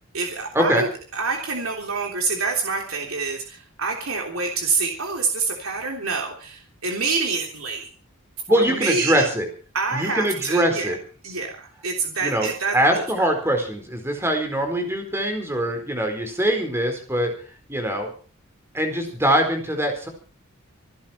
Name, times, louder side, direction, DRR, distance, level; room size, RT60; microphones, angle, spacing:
voice 1, 0.1-7.9 8.5-9.3 9.7-10.9 11.2-13.3, right 4 dB, 80° right, 1 dB, 3.3 m, -27 dB
voice 2, 8.5-9.5 9.9-11.0 12.2-12.5 12.7-17.3 17.7-18.1 18.7-20.1, equal, 10° right, 4 dB, 4.5 m, -22 dB
26.0 x 11.5 x 4.5 m, 0.39 s
head